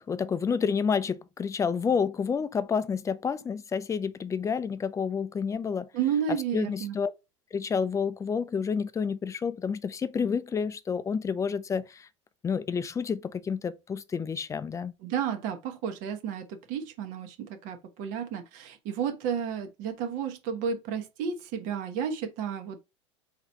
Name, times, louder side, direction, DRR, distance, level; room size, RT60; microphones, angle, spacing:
voice 1, 0.0-5.9 6.5-7.1 7.5-12.1 12.4-14.9, left 6 dB, 20° left, 0.5 m, -29 dB
voice 2, 5.9-7.0 15.0-22.8, right 7 dB, 60° right, 1.1 m, -32 dB
3.9 x 2.9 x 4.4 m
hypercardioid pair, 90°, 16 cm